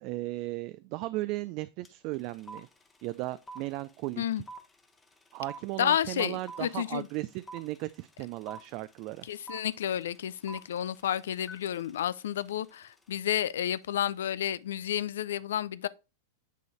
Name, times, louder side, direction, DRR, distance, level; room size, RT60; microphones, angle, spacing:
voice 1, 0.0-2.7 3.0-4.2 5.3-9.3, right 18 dB, 50° right, 0.3 m, -36 dB
sound 1, 1.8-1.9 2.1-13.3, right 2 dB, 15° left, 1.1 m, -48 dB
voice 2, 5.8-7.1 9.2-15.9, left 10 dB, 70° left, 0.4 m, -31 dB
8.3 x 3.9 x 3.1 m
hypercardioid pair, 100°, 0 cm